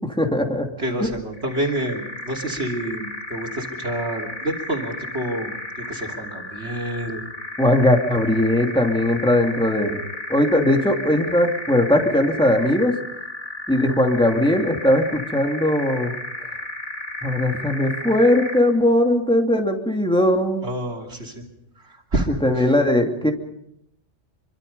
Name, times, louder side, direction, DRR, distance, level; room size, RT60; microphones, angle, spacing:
voice 1, 0.1-0.7 1.0-1.1 7.6-10.0 10.3-13.0 13.7-16.1 17.2-20.7 22.4-23.3, left 1 dB, 5° left, 2 dB, 2.7 m, -19 dB
voice 2, 0.8-7.2 20.6-21.4 21.8-22.6, right 1 dB, 60° right, 1 dB, 3.4 m, -28 dB
sound 1, 1.3-18.8, left 1 dB, 30° left, 2.3 m, -34 dB
25.5 x 25.0 x 5.5 m, 0.76 s
omnidirectional pair, 1.3 m